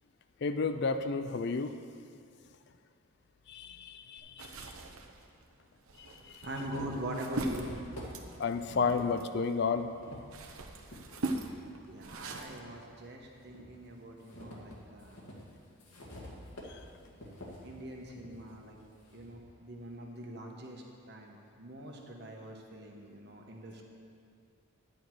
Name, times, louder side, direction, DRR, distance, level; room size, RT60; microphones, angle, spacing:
voice 1, 0.4-1.7 3.5-4.5 8.4-9.9, left 4 dB, 50° left, 9 dB, 0.4 m, -31 dB
sound 1, 4.2-4.3 5.3-5.4 5.9-11.1 11.6-12.8 13.2-19.4, left 1 dB, 85° left, 2.1 m, -50 dB
sound 2, 4.4-9.6 10.0-12.6, right 2 dB, 75° right, 0.9 m, -40 dB
voice 2, 6.4-7.8 11.9-15.2 17.6-18.8 19.1-23.8, right 1 dB, 50° right, 0 dB, 1.3 m, -43 dB
11.0 x 9.1 x 4.7 m, 2.3 s
head